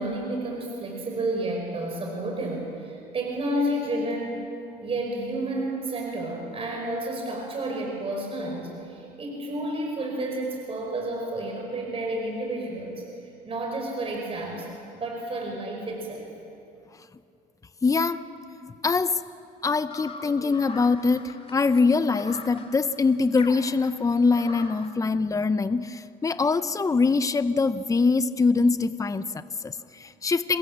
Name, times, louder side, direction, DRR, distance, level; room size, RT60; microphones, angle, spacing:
voice 1, 0.0-4.4 4.8-16.3, right 1 dB, 35° right, 0 dB, 5.5 m, -31 dB
voice 2, 17.8-18.2 18.8-19.2 19.6-30.6, left 4 dB, 20° left, 12 dB, 0.8 m, -23 dB
sound 1, 19.9-24.9, left 3 dB, 35° left, 2.6 m, -42 dB
28.0 x 22.0 x 7.5 m, 2.5 s
cardioid pair, 110°, 17 cm